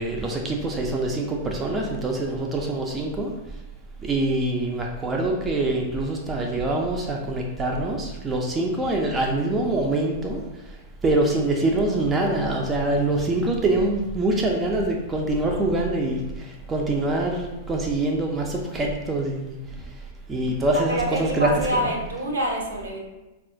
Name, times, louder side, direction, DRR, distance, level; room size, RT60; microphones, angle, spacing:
voice 1, 0.0-3.3 4.0-10.4 11.0-19.6 20.3-21.9, right 2 dB, 20° right, 0 dB, 0.4 m, -24 dB
voice 2, 20.7-23.0, equal, 70° right, 1 dB, 0.6 m, -26 dB
4.1 x 2.3 x 2.6 m, 1.1 s
figure-of-eight pair, 95°, 0 cm